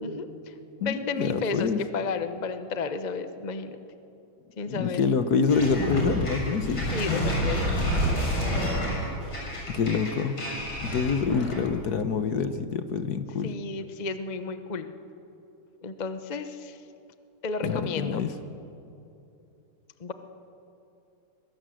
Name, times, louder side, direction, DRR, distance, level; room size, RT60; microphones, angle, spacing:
voice 1, 0.0-3.8 4.6-5.0 6.9-7.8 13.4-14.9 15.8-16.8 17.4-18.2 20.0-20.1, left 4 dB, 35° left, 9 dB, 0.6 m, -33 dB
voice 2, 0.8-1.8 4.7-7.3 9.7-10.3 10.8-13.5 17.6-18.3, left 5 dB, 55° left, 10 dB, 1.4 m, -26 dB
sound 1, 5.5-11.7, equal, 80° left, 7.3 m, -28 dB
22.5 x 22.0 x 7.7 m, 2.7 s
omnidirectional pair, 2.3 m